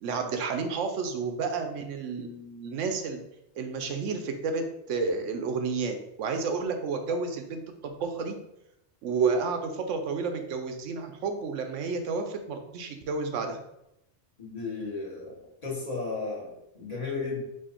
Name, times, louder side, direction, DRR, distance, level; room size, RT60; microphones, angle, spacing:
voice 1, 0.0-3.2 3.5-8.4 9.0-13.6, right 4 dB, 85° right, 6 dB, 1.0 m, -31 dB
voice 2, 14.4-17.4, left 4 dB, 35° left, -6 dB, 1.4 m, -34 dB
4.6 x 2.5 x 4.3 m, 0.83 s
omnidirectional pair, 1.2 m